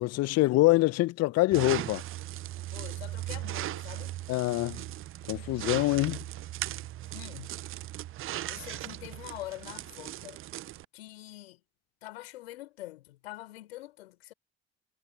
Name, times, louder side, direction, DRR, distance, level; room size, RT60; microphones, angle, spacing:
voice 1, 0.0-2.0 4.3-4.8 5.3-6.2, left 19 dB, 50° left, 1.0 m, -25 dB
sound 1, 1.5-10.8, right 14 dB, 40° right, 0.7 m, -38 dB
voice 2, 2.7-4.2 7.1-7.5 8.5-10.4 10.9-11.6 12.0-14.3, left 16 dB, 75° left, 5.5 m, -45 dB
figure-of-eight pair, 60°, 31 cm